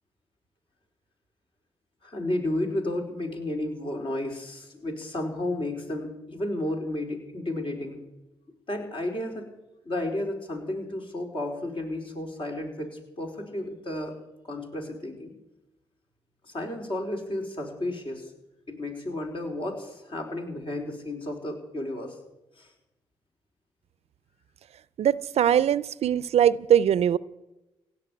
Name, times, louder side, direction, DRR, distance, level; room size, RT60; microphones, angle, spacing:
voice 1, 2.0-8.0 8.7-9.5 9.8-14.1 14.4-15.3 16.4-18.3 18.7-22.2 22.6-22.7, left 1 dB, 50° left, 2 dB, 4.4 m, -32 dB
voice 2, 25.0-27.2, right 9 dB, 70° right, 19 dB, 0.5 m, -21 dB
16.5 x 6.6 x 9.7 m, 0.97 s
supercardioid pair, 50°, 11 cm